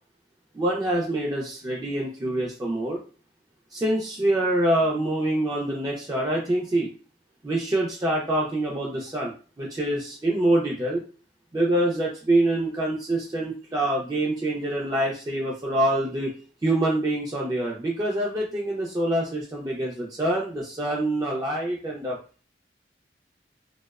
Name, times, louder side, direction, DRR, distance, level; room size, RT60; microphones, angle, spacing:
voice 1, 0.5-3.0 3.7-6.9 7.4-11.0 11.5-16.3 16.6-22.2, right 1 dB, 20° right, -3 dB, 0.4 m, -25 dB
2.7 x 2.0 x 2.3 m, 0.38 s
head